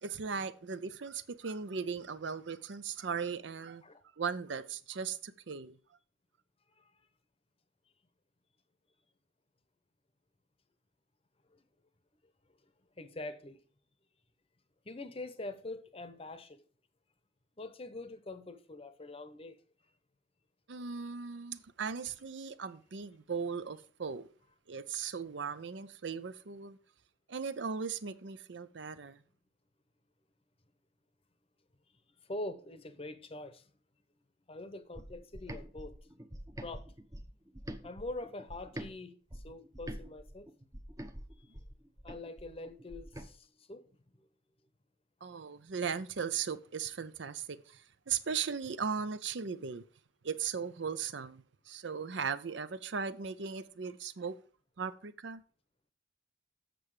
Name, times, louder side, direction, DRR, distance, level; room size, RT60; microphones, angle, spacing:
voice 1, 0.0-3.8 4.2-5.8 20.7-24.3 24.7-26.8 27.3-29.2 45.2-49.8 50.2-54.4 54.8-55.4, right 6 dB, 65° right, 0.6 m, -38 dB
voice 2, 13.0-13.6 14.8-16.6 17.6-19.6 32.3-33.6 34.5-36.0 36.6-36.9 37.8-40.5 41.4-41.5 42.0-44.3, left 2 dB, 30° left, 0.8 m, -44 dB
sound 1, 34.9-38.9 39.3-43.3, equal, 15° right, 0.8 m, -46 dB
7.7 x 6.6 x 4.9 m
head